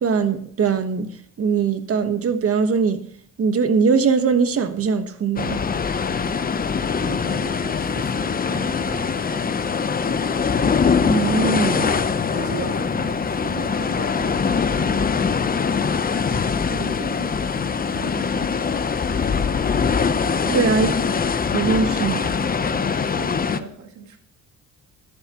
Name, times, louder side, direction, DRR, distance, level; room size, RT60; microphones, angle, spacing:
voice 1, 0.0-1.1 1.4-3.0 3.4-5.6 11.0-11.9 20.5-20.9 21.5-22.2, right 5 dB, 50° right, 1.3 m, -21 dB
sound 1, 5.4-23.6, left 5 dB, 30° left, 0.8 m, -22 dB
voice 2, 7.0-9.5 12.3-15.2 16.7-18.9 20.5-21.1 21.7-24.2, right 5 dB, 70° right, 2.2 m, -38 dB
13.0 x 11.5 x 3.0 m
cardioid pair, 90°, 30 cm